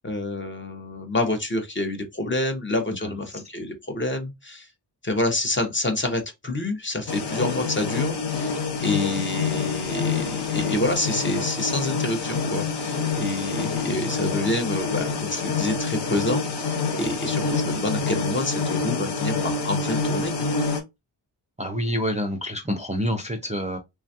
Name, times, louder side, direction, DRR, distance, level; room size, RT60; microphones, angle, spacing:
voice 1, 0.0-4.7 5.0-20.5, left 2 dB, 30° left, 0.6 m, -28 dB
sound 1, 7.1-20.8, left 4 dB, 70° left, 0.8 m, -27 dB
voice 2, 21.6-23.8, equal, 20° right, 0.4 m, -27 dB
3.2 x 2.3 x 2.5 m
wide cardioid pair, 165°, 43 cm